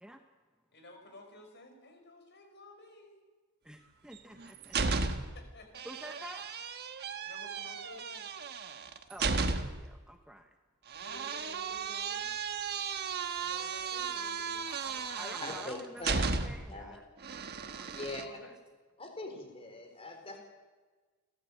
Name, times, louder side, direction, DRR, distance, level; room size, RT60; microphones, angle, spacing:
voice 1, 0.7-3.2 5.3-5.9 7.1-8.4 10.9-12.3 13.4-15.7 17.8-18.5, left 2 dB, 50° left, 4 dB, 5.2 m, -53 dB
voice 2, 3.6-5.0 5.8-6.4 9.1-10.6 15.2-17.0 17.6-18.5, right 1 dB, 5° right, 5 dB, 1.0 m, -49 dB
sound 1, 4.1-5.4 5.7-9.9 10.9-16.7 17.2-18.2, right 4 dB, 50° right, 1.3 m, -35 dB
voice 3, 15.4-16.2 16.7-17.0 17.9-18.2 19.0-20.4, left 2 dB, 25° left, 3 dB, 4.4 m, -42 dB
30.0 x 12.5 x 8.3 m, 1.3 s
head